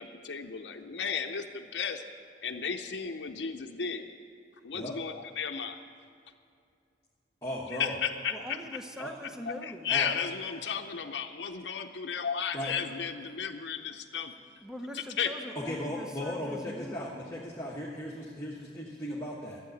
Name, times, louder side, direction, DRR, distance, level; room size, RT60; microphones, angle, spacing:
voice 1, 0.0-2.0 2.4-4.1 4.6-5.8 7.7-8.4 9.5-14.3 14.9-15.3, left 7 dB, 70° left, 4 dB, 0.7 m, -34 dB
voice 2, 7.4-8.0 9.0-9.1 9.9-10.3 12.5-12.8 15.5-19.6, left 1 dB, 15° left, -5 dB, 1.3 m, -37 dB
voice 3, 8.3-10.1 14.6-17.4, equal, 5° right, 4 dB, 0.9 m, -43 dB
12.5 x 8.0 x 9.2 m, 2.4 s
head